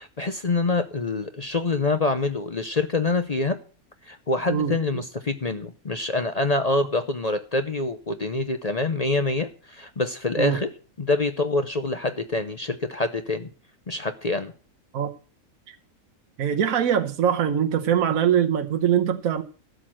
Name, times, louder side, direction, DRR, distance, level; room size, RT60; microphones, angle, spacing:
voice 1, 0.0-3.6 4.1-10.7 11.0-13.5 13.9-14.5, left 2 dB, 35° left, 0.7 m, -26 dB
voice 2, 16.4-19.4, right 9 dB, 75° right, 1.4 m, -22 dB
13.0 x 6.3 x 7.7 m
omnidirectional pair, 1.5 m